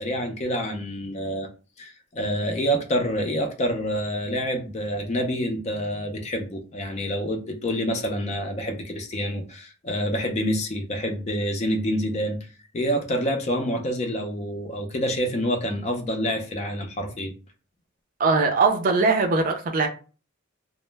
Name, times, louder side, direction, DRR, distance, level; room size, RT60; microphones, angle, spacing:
voice 1, 0.0-1.5 1.8-12.4 12.7-17.3, equal, 35° left, 0.4 m, -27 dB
voice 2, 18.2-19.9, right 4 dB, 40° right, 0.4 m, -21 dB
2.0 x 2.0 x 3.2 m
head